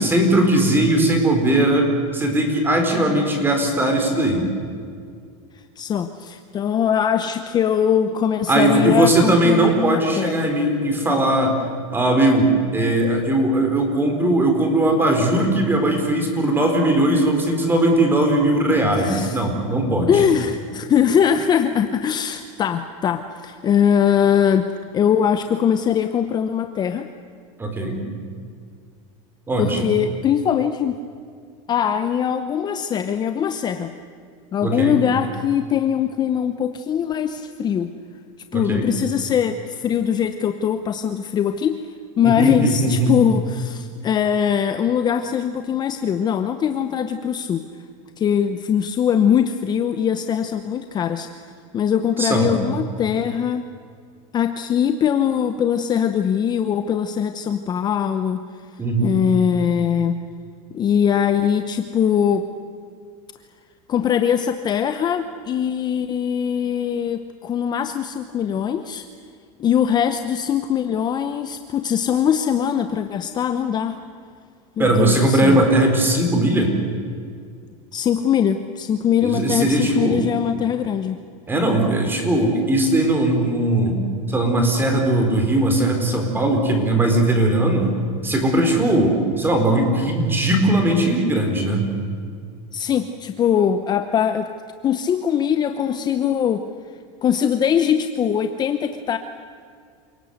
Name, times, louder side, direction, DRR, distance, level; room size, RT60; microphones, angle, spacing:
voice 1, 0.0-4.5 8.5-11.5 11.9-20.2 27.6-28.0 29.5-29.8 34.6-35.0 38.5-38.9 42.2-43.1 52.2-52.6 58.8-59.2 74.8-76.7 79.2-80.2 81.5-84.0 84.3-87.9 88.2-91.8, right 1 dB, 10° right, 4 dB, 4.3 m, -19 dB
voice 2, 5.5-10.5 19.0-19.4 20.1-24.7 24.9-27.1 29.6-31.0 31.7-33.9 34.5-37.9 38.5-41.8 42.2-47.6 48.2-53.7 54.3-58.6 59.0-60.2 60.7-62.4 63.9-69.0 69.6-74.0 74.8-75.6 77.9-81.2 92.7-94.5 94.8-96.6 97.2-99.2, left 8 dB, 25° left, 8 dB, 0.9 m, -21 dB
28.0 x 18.5 x 8.0 m, 2.2 s
supercardioid pair, 145°, 17 cm